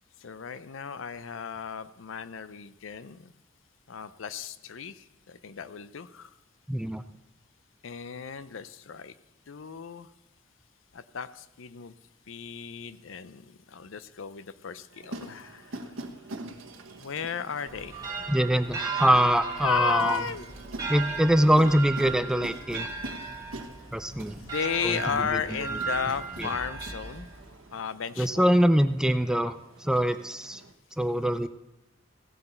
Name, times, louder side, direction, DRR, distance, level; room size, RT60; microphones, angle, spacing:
voice 1, 0.2-3.3 3.9-6.3 7.8-9.2 9.5-10.1 10.9-11.9 12.3-15.9 17.0-18.0 19.6-20.5 24.4-27.3 27.7-28.5, left 7 dB, 70° left, 14 dB, 0.6 m, -34 dB
voice 2, 6.7-7.0 18.3-20.2 20.9-22.9 23.9-24.4 24.8-25.0 25.3-25.4 26.4-26.5 28.2-29.5 29.8-30.6 31.0-31.5, equal, 5° right, 11 dB, 0.3 m, -23 dB
sound 1, 14.9-30.7, right 2 dB, 80° right, 1.2 m, -45 dB
sound 2, 17.7-27.6, right 5 dB, 20° right, 1.8 m, -36 dB
16.0 x 7.9 x 4.4 m, 0.94 s
head